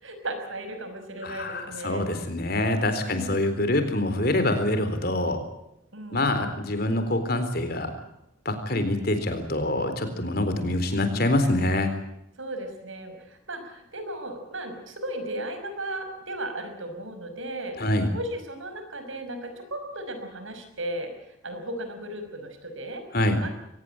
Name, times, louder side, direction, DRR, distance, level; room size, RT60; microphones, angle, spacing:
voice 1, 0.0-2.1 3.1-3.7 5.9-6.3 12.4-17.8 18.1-21.1 21.4-23.0 23.4-23.5, right 1 dB, 75° right, 7 dB, 5.6 m, -35 dB
voice 2, 1.2-5.4 6.1-7.9 8.5-11.9 17.8-18.1 23.1-23.4, left 1 dB, 50° left, 9 dB, 3.9 m, -25 dB
23.0 x 19.0 x 8.9 m, 0.81 s
head